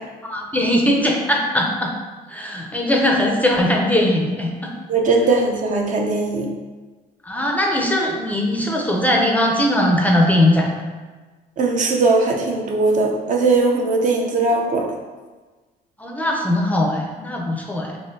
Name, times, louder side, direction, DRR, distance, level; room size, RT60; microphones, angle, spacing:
voice 1, 0.2-1.9 2.3-4.7 7.2-10.7 16.0-18.0, left 1 dB, 10° left, 0 dB, 0.4 m, -20 dB
voice 2, 4.9-6.5 11.6-14.9, right 3 dB, 50° right, 1 dB, 0.6 m, -19 dB
4.2 x 2.8 x 2.6 m, 1.3 s
cardioid pair, 110°, 17 cm